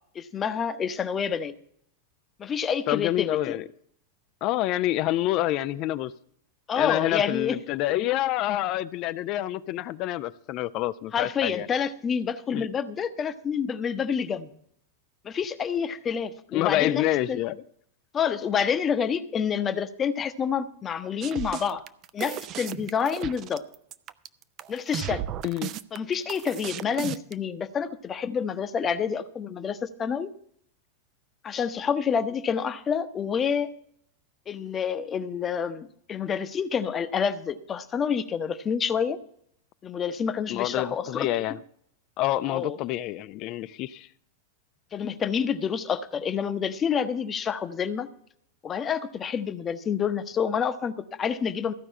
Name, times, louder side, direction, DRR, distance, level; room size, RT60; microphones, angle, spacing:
voice 1, 0.1-1.5 2.4-3.5 6.7-7.6 11.1-14.5 15.2-17.4 18.1-21.8 22.1-23.6 24.7-25.2 25.9-30.3 31.4-33.7 34.5-39.2 39.8-41.3 42.5-42.8 44.9-48.1 48.6-51.7, left 7 dB, 25° left, 0.8 m, -28 dB
voice 2, 2.9-3.6 4.4-6.1 6.8-11.7 12.5-12.7 16.5-17.6 25.4-25.7 40.5-41.6 42.2-44.1, left 14 dB, 40° left, 0.4 m, -27 dB
sound 1, 21.2-27.3, right 11 dB, 35° right, 0.5 m, -35 dB
14.5 x 5.3 x 8.5 m
figure-of-eight pair, 90°, 0 cm